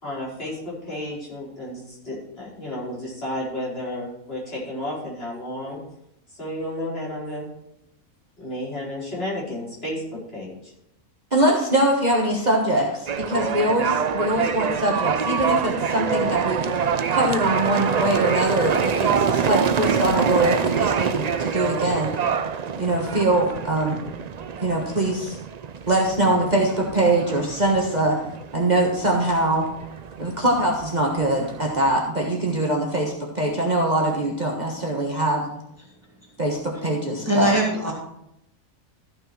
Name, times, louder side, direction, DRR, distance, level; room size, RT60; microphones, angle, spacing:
voice 1, 0.0-5.8 6.3-7.5 8.4-10.5, left 1 dB, 45° left, -7 dB, 5.1 m, -32 dB
voice 2, 11.3-16.6 17.1-22.1 22.7-24.0 24.6-25.4 25.9-28.2 28.5-29.7 30.2-35.4 36.4-37.5, right 1 dB, 30° right, -2 dB, 1.6 m, -22 dB
sound 1, 13.1-32.0, right 6 dB, 85° right, 0.3 m, -26 dB
voice 3, 37.2-37.9, right 1 dB, 10° right, -3 dB, 2.8 m, -21 dB
14.0 x 6.5 x 4.6 m, 0.81 s
omnidirectional pair, 1.5 m